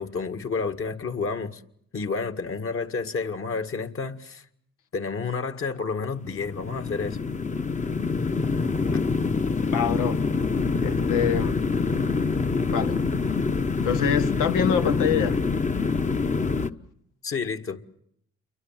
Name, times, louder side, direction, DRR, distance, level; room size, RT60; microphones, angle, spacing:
voice 1, 0.0-1.6 1.9-4.4 4.9-7.2 8.9-9.0 17.2-17.8, left 4 dB, 45° left, 2.1 m, -30 dB
sound 1, 6.2-16.7, left 4 dB, 25° left, 1.1 m, -25 dB
voice 2, 9.7-10.2 10.8-11.6 12.7-13.0 13.8-15.4, left 8 dB, 90° left, 1.6 m, -25 dB
29.0 x 24.0 x 7.6 m
cardioid pair, 90°, 30 cm